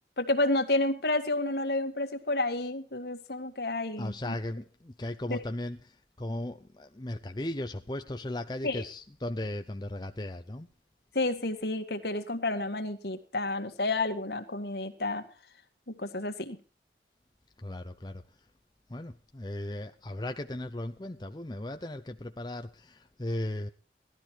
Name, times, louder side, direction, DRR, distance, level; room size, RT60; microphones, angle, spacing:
voice 1, 0.2-4.3 5.3-5.4 8.6-8.8 11.2-15.2 16.0-16.6, left 2 dB, 65° left, 1.9 m, -30 dB
voice 2, 4.0-10.7 17.6-18.2 18.9-23.7, left 1 dB, 25° left, 0.7 m, -37 dB
17.0 x 12.5 x 4.6 m
head